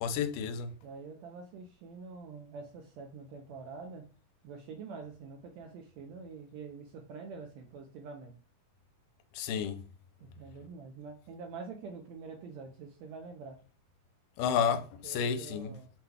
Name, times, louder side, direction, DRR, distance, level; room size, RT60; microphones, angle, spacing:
voice 1, 0.0-0.8 9.4-9.8 14.4-15.8, left 7 dB, 85° left, 2.1 m, -31 dB
voice 2, 0.8-4.1 4.4-8.3 10.2-13.6 14.7-15.9, right 4 dB, 80° right, 1.6 m, -46 dB
5.9 x 2.2 x 3.4 m
omnidirectional pair, 3.7 m